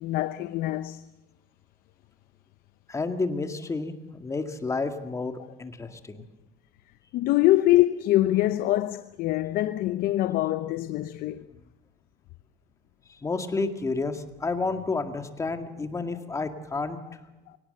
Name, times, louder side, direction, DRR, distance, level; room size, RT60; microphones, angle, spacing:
voice 1, 0.0-1.0 7.1-11.5 17.5-17.6, left 15 dB, 65° left, 0.8 m, -24 dB
voice 2, 2.9-3.9 4.2-6.2 13.2-17.0, left 3 dB, 20° left, 2.1 m, -30 dB
23.5 x 18.0 x 7.9 m
cardioid pair, 125°, 16 cm